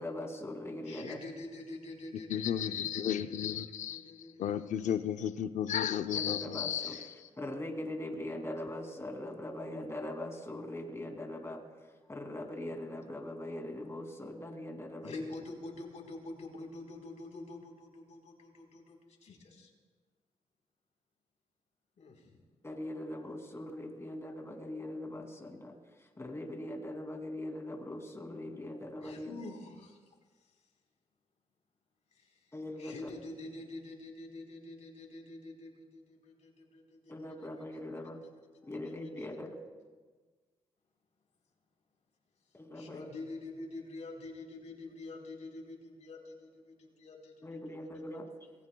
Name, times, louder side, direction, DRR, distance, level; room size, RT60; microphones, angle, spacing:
voice 1, 0.0-1.2 6.1-7.0 7.4-11.8 12.1-15.3 22.6-29.4 32.5-33.1 37.1-38.2 38.6-39.6 42.5-43.1 47.4-48.3, left 1 dB, 20° left, 2 dB, 2.6 m, -41 dB
voice 2, 0.8-4.9 15.0-19.7 22.0-22.4 29.0-30.0 32.1-32.4 32.8-37.8 38.7-39.3 42.7-47.9, left 2 dB, 70° left, 0 dB, 4.0 m, -47 dB
voice 3, 2.3-7.1, left 9 dB, 85° left, 10 dB, 0.6 m, -34 dB
27.5 x 19.5 x 2.3 m, 1.4 s
cardioid pair, 85°, 12 cm